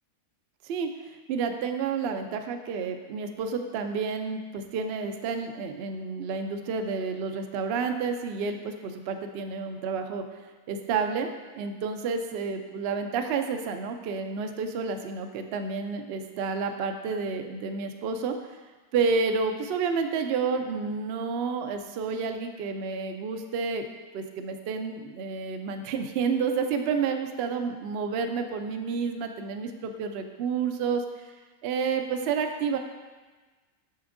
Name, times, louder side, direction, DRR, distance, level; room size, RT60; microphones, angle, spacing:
voice 1, 1.3-10.2 10.7-11.3 11.5-18.4 18.9-23.8 24.1-31.0 31.6-32.8, right 5 dB, 65° right, 5 dB, 0.6 m, -30 dB
6.9 x 6.0 x 2.5 m, 1.3 s
omnidirectional pair, 1.5 m